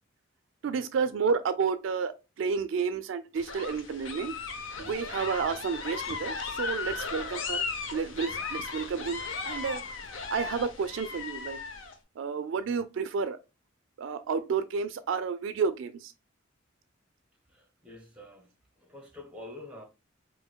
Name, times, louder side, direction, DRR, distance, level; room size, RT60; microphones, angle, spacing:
voice 1, 0.6-4.4 4.8-7.6 7.9-9.2 9.5-9.8 10.3-11.6 12.2-13.4 14.0-16.1, right 5 dB, 65° right, 0.3 m, -31 dB
sound 1, 3.3-11.9, left 5 dB, 75° left, 0.7 m, -36 dB
voice 2, 17.5-18.5 18.8-19.8, left 1 dB, 5° right, 0.9 m, -46 dB
4.9 x 2.5 x 2.2 m
head